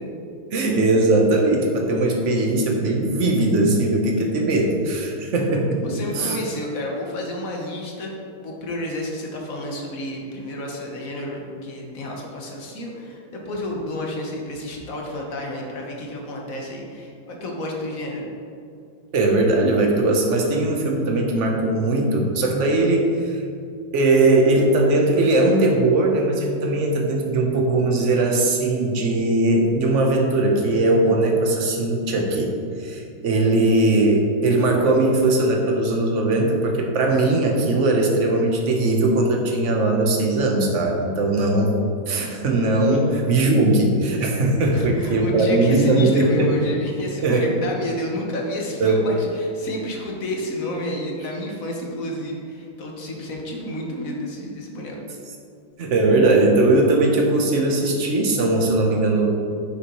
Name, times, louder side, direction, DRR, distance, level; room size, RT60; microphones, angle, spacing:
voice 1, 0.5-5.8 6.1-6.4 19.1-23.4 23.9-32.5 32.8-41.8 42.1-46.5 47.2-47.5 48.8-49.0 55.8-59.3, right 2 dB, 45° right, 1 dB, 1.1 m, -19 dB
voice 2, 5.7-8.1 8.4-18.3 42.9-43.0 44.7-55.0, left 1 dB, 50° left, -1 dB, 1.4 m, -30 dB
9.4 x 6.5 x 3.1 m, 2.4 s
omnidirectional pair, 2.2 m